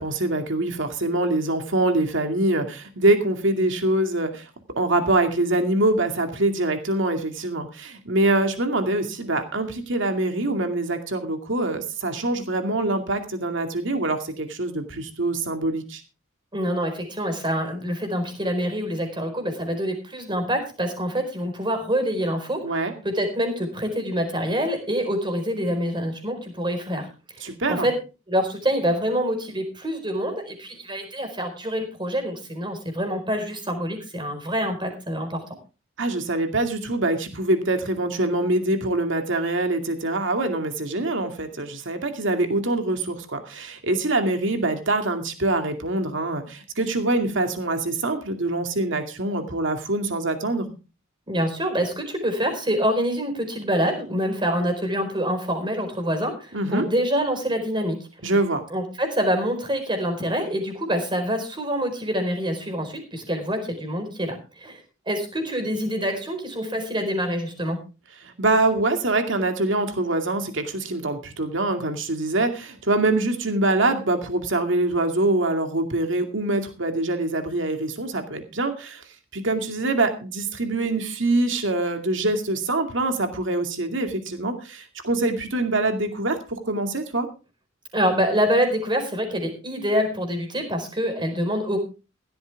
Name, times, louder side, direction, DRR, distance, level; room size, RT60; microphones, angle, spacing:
voice 1, 0.0-4.5 4.8-16.0 22.6-22.9 27.4-27.9 36.0-50.7 56.5-56.9 58.2-58.6 68.2-79.0 79.3-87.3, right 2 dB, 65° right, 6 dB, 2.4 m, -24 dB
voice 2, 16.5-22.6 23.0-27.1 27.4-28.0 28.3-35.4 51.3-58.0 58.7-64.8 65.1-67.8 87.9-91.8, equal, 25° right, 5 dB, 4.5 m, -26 dB
16.5 x 13.0 x 3.5 m, 0.32 s
head